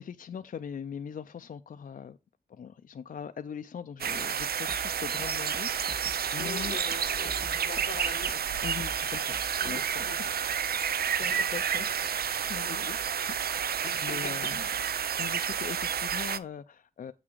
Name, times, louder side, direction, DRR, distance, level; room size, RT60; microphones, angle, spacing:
voice 1, 0.0-2.2 2.5-6.8 8.6-10.4 11.1-12.1 12.5-13.0 13.3-14.7 15.2-17.1, left 7 dB, 60° left, 0.4 m, -41 dB
sound 1, 4.0-16.4, right 8 dB, 80° right, 0.5 m, -30 dB
sound 2, 4.7-10.1, right 1 dB, 5° right, 0.7 m, -46 dB
voice 2, 6.3-8.4 9.6-10.4 11.2-11.4 11.8-11.9 12.6-12.9 13.8-14.5, left 6 dB, 90° left, 0.9 m, -42 dB
7.3 x 6.1 x 4.5 m
wide cardioid pair, 125°, 16 cm